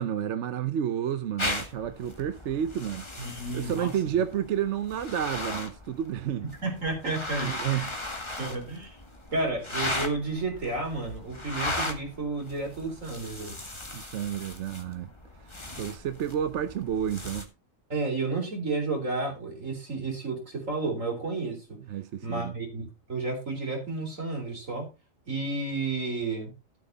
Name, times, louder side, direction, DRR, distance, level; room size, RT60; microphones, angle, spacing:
voice 1, 0.0-3.1 3.5-6.4 7.4-7.9 13.9-15.1 15.8-17.5 21.9-22.5, right 9 dB, 65° right, 1.0 m, -30 dB
sound 1, 1.4-17.4, left 2 dB, 20° left, 1.8 m, -37 dB
voice 2, 3.2-3.9 6.6-7.9 8.4-9.0 9.3-13.6 17.9-21.6 22.2-24.9 25.3-26.5, right 3 dB, 85° right, 4.3 m, -31 dB
13.0 x 7.9 x 4.0 m
omnidirectional pair, 1.3 m